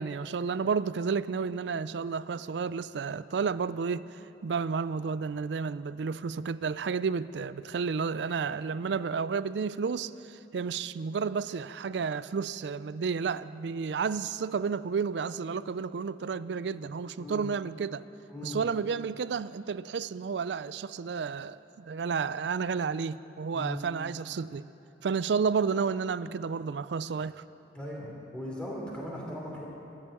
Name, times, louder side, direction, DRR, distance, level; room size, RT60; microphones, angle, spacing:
voice 1, 0.0-18.0 18.4-24.7 25.0-27.4, right 5 dB, 75° right, 16 dB, 0.4 m, -31 dB
voice 2, 17.2-17.5 18.3-18.9 23.5-23.8 27.7-29.7, left 1 dB, 5° left, -4 dB, 3.3 m, -38 dB
13.5 x 8.8 x 9.9 m, 2.8 s
head